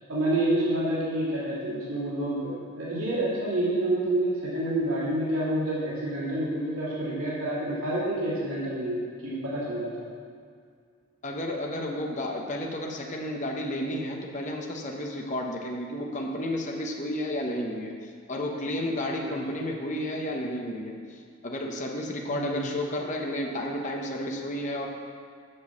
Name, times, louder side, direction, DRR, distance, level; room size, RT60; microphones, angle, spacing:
voice 1, 0.1-10.1 19.2-19.3 22.3-22.6, right 1 dB, 80° right, -8 dB, 2.7 m, -28 dB
voice 2, 11.2-24.9, left 1 dB, 35° left, 0 dB, 1.0 m, -32 dB
7.6 x 6.3 x 7.1 m, 2.2 s
head